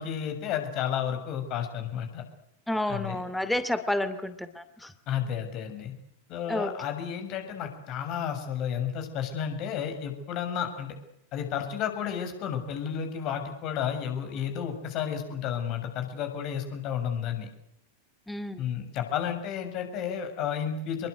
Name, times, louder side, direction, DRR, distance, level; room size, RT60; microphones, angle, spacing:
voice 1, 0.0-2.2 2.9-3.2 5.1-5.9 6.3-10.9 11.3-17.5 18.6-21.1, left 8 dB, 40° left, 6 dB, 6.9 m, -32 dB
voice 2, 2.7-4.9 6.5-6.8 18.3-18.6, left 1 dB, 5° left, 11 dB, 2.5 m, -30 dB
28.0 x 22.0 x 8.2 m, 0.78 s
figure-of-eight pair, 90°, 0 cm